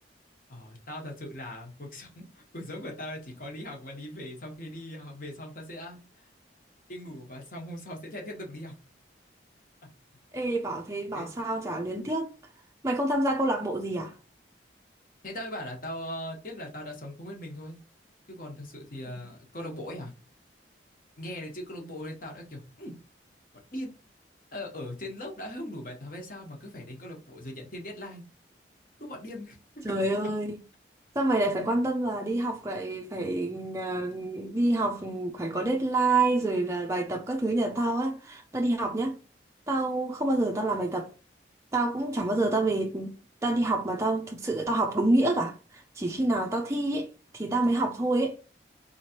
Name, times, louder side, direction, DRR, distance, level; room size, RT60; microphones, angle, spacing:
voice 1, 0.5-6.0 6.9-8.7 11.1-11.6 15.2-17.8 18.3-20.1 21.2-22.9 23.7-23.9 24.5-28.2 29.0-29.6, left 1 dB, 50° left, 1.2 m, -40 dB
voice 2, 10.3-12.3 12.8-14.1 29.8-30.5 31.2-39.2 39.7-41.1 41.7-43.1 43.4-48.4, right 2 dB, 15° right, 0.4 m, -27 dB
4.0 x 3.0 x 2.9 m
head